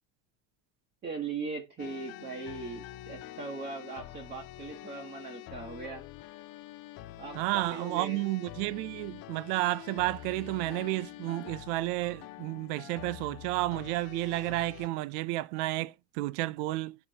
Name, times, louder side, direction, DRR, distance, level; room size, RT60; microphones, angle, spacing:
voice 1, 1.0-6.0 7.2-8.2, right 4 dB, 20° right, 0.9 m, -39 dB
sound 1, 1.8-14.9, left 14 dB, 50° left, 0.5 m, -46 dB
voice 2, 7.4-17.0, right 19 dB, 80° right, 0.5 m, -31 dB
8.1 x 4.3 x 2.8 m
cardioid pair, 165°, 46 cm